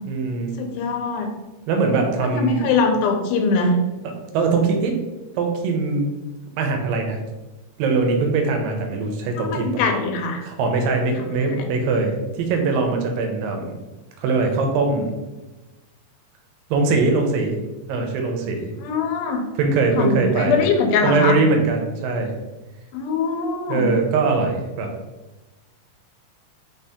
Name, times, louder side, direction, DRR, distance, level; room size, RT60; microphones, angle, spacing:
voice 1, 0.1-0.6 1.7-2.6 4.3-4.9 5.4-6.1 6.6-7.2 7.8-9.8 10.4-13.7 14.2-15.1 16.7-17.6 17.9-18.7 19.6-20.6 21.0-22.3 23.7-24.9, right 3 dB, 80° right, 3 dB, 2.4 m, -21 dB
voice 2, 0.6-1.3 2.2-3.8 9.4-10.4 18.8-19.4 20.0-21.4 22.9-23.9, left 4 dB, 90° left, 4 dB, 2.4 m, -22 dB
5.5 x 2.8 x 3.5 m, 1.1 s
omnidirectional pair, 4.1 m